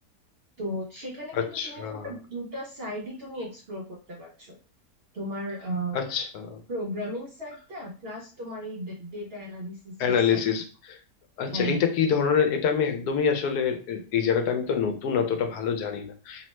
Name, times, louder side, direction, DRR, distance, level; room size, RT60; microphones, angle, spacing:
voice 1, 0.6-4.6 5.1-6.0 6.7-10.4 11.5-11.8, right 1 dB, 60° right, -3 dB, 0.6 m, -35 dB
voice 2, 1.3-2.1 5.9-6.6 10.0-11.0 11.4-16.5, left 7 dB, 85° left, 6 dB, 1.1 m, -26 dB
2.8 x 2.1 x 3.0 m, 0.34 s
omnidirectional pair, 1.6 m